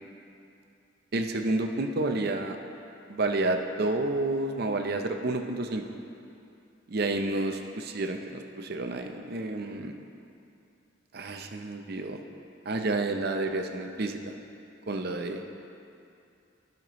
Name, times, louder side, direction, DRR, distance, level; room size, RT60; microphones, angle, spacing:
voice 1, 1.1-2.6 3.1-5.8 6.9-9.9 11.1-12.2 12.6-14.2 14.9-15.4, right 2 dB, 50° right, 5 dB, 0.6 m, -30 dB
15.0 x 5.9 x 3.0 m, 2.6 s
head